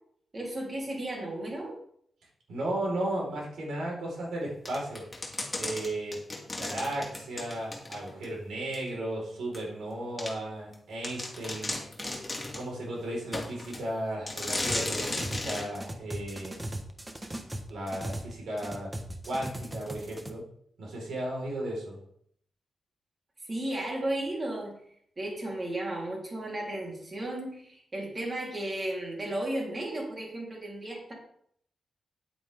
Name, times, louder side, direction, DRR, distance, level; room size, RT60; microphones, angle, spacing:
voice 1, 0.3-1.7 23.4-24.7 25.2-31.1, right 1 dB, 35° right, -2 dB, 3.7 m, -34 dB
voice 2, 2.5-5.0 5.6-6.2 6.6-11.7 12.5-16.6 17.7-19.0 19.2-20.4 20.8-22.0, right 1 dB, 85° right, -3 dB, 4.7 m, -35 dB
sound 1, 4.7-8.3 8.7-8.8 9.5-9.6 10.2-10.3 10.7-10.8 11.0-12.7 13.3-13.8 14.3-15.7, left 2 dB, 20° left, 2.4 m, -35 dB
sound 2, 14.7-15.5 15.7-18.3 18.6-20.3, right 1 dB, 15° right, 1.3 m, -38 dB
9.6 x 8.4 x 3.7 m, 0.66 s
cardioid pair, 85°, 0 cm